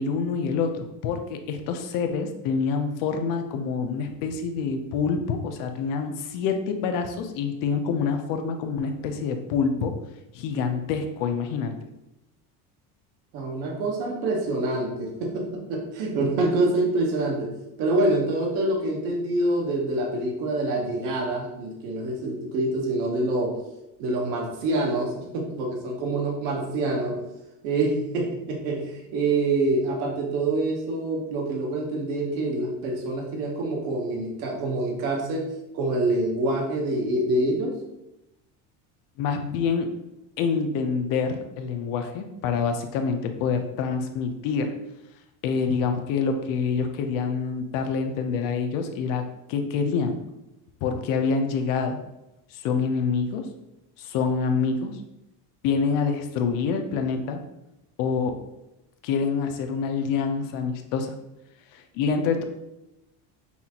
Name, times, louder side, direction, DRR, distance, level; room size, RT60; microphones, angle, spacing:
voice 1, 0.0-9.9 10.3-11.7 39.2-39.9 40.4-44.7 45.4-49.2 49.5-50.2 50.8-52.0 52.5-53.4 54.0-55.0 55.6-57.4 58.0-58.4 59.0-61.1 61.7-62.4, left 5 dB, 55° left, 6 dB, 0.6 m, -26 dB
voice 2, 13.3-17.5 17.8-23.6 24.0-27.2 27.6-35.4 35.7-37.8, right 2 dB, 85° right, 0 dB, 0.9 m, -26 dB
5.6 x 2.4 x 2.8 m, 0.92 s
cardioid pair, 170°, 39 cm